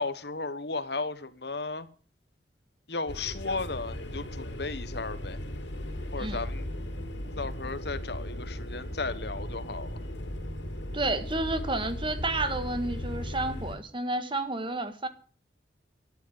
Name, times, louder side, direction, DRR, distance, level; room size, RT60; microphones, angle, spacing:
voice 1, 0.0-1.9 2.9-5.4 6.1-6.7 7.4-10.0, left 3 dB, 65° left, 1.4 m, -35 dB
sound 1, 3.1-13.8, left 1 dB, 85° left, 3.9 m, -37 dB
voice 2, 10.9-15.1, right 2 dB, 30° right, 1.6 m, -31 dB
12.0 x 10.5 x 9.5 m
head